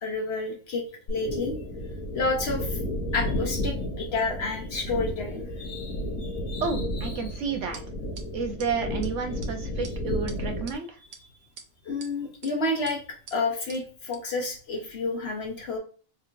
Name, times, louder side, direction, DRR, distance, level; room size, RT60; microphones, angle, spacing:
voice 1, 0.0-1.6 2.1-2.8 3.1-6.6 11.8-13.0 13.3-15.8, left 3 dB, 55° left, 1 dB, 1.0 m, -30 dB
Lonely Winter Breeze, 1.1-10.8, left 1 dB, 80° left, 1.3 m, -32 dB
voice 2, 6.6-7.8 8.3-11.0, right 5 dB, 70° right, 6 dB, 0.9 m, -31 dB
sound 1, 7.7-7.8 8.2-8.3 8.6-8.7 9.0-9.1 9.4-9.5 9.8-9.9 10.3-10.7 11.1-11.2 11.6-12.1 12.4-12.5 12.9-13.0 13.3-13.4 13.7-13.8 14.1-14.2, right 5 dB, 85° right, 1.1 m, -44 dB
3.7 x 2.8 x 2.5 m, 0.38 s
omnidirectional pair, 1.4 m